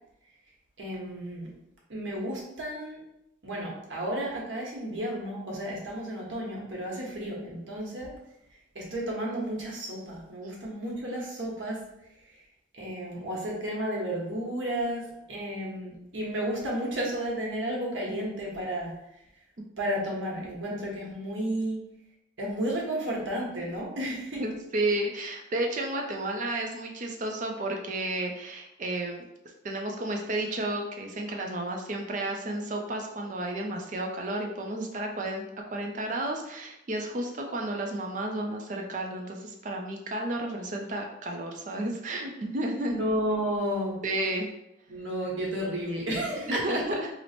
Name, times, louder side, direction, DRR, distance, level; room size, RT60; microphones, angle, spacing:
voice 1, 0.8-1.5 1.9-3.0 3.4-8.1 8.7-11.8 12.7-18.9 19.8-21.8 22.4-24.4 42.9-44.0 44.9-46.8, right 1 dB, 80° right, -3 dB, 1.0 m, -32 dB
voice 2, 24.4-29.2 29.6-43.0 44.0-44.5 46.5-47.1, right 1 dB, 40° right, 2 dB, 0.4 m, -32 dB
3.0 x 2.0 x 4.1 m, 0.86 s
head